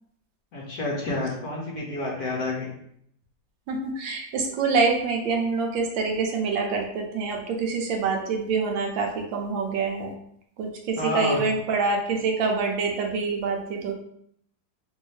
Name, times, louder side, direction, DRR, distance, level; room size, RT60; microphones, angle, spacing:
voice 1, 0.5-2.7 11.0-11.4, left 2 dB, 60° left, -3 dB, 1.3 m, -29 dB
voice 2, 3.7-10.1 10.6-13.9, right 4 dB, 85° right, 2 dB, 1.4 m, -26 dB
3.5 x 2.7 x 3.1 m, 0.70 s
omnidirectional pair, 2.0 m